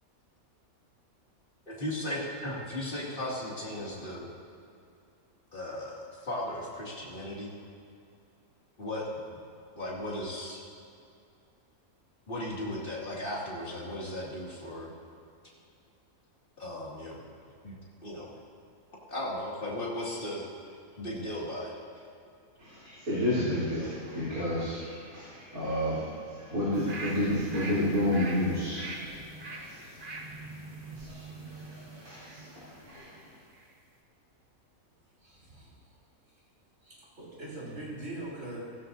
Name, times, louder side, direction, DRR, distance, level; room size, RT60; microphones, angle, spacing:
voice 1, 1.7-4.3 5.5-7.5 8.8-9.1 9.8-10.6 12.3-14.9 16.6-17.2 17.6-17.8 18.0-18.3 19.1-20.4 21.0-22.0, left 1 dB, 35° left, -5 dB, 2.8 m, -36 dB
voice 2, 22.6-33.3, left 1 dB, 85° right, -12 dB, 4.0 m, -32 dB
sound 1, 26.7-33.2 33.5-33.6, right 2 dB, 40° right, 1.3 m, -43 dB
voice 3, 35.2-35.7 36.8-38.6, right 2 dB, 55° right, -6 dB, 4.2 m, -42 dB
16.5 x 15.5 x 2.8 m, 2.5 s
omnidirectional pair, 1.5 m